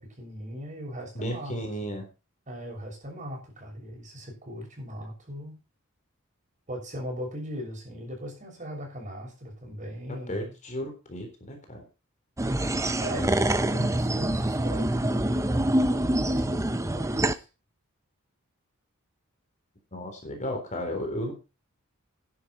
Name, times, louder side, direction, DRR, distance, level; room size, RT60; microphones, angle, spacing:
voice 1, 0.0-1.5 1.8-2.0 2.5-5.6 6.7-10.5 13.0-17.5, equal, 35° right, 0 dB, 6.8 m, -39 dB
voice 2, 1.2-2.0 10.3-11.8 19.9-21.3, equal, 35° left, 4 dB, 3.7 m, -34 dB
sound 1, 12.4-17.3, right 1 dB, 15° right, 0.7 m, -25 dB
11.5 x 11.0 x 4.3 m, 0.30 s
head